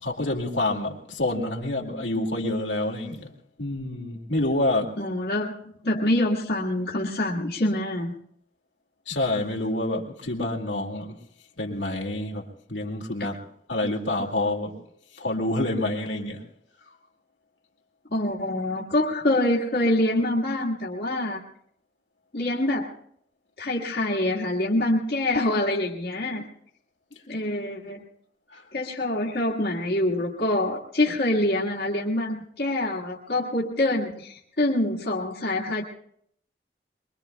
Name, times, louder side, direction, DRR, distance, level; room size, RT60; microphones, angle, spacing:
voice 1, 0.0-3.3 3.6-4.9 9.1-11.2 11.6-12.4 12.7-13.4 13.7-14.8 15.1-16.4 28.5-28.6, left 2 dB, 90° left, 0 dB, 2.2 m, -27 dB
voice 2, 5.0-5.5 5.8-8.1 18.1-21.4 22.3-22.9 23.6-26.4 27.3-28.0 28.7-35.8, left 1 dB, 60° left, -4 dB, 1.7 m, -25 dB
23.0 x 23.0 x 2.3 m, 0.70 s
head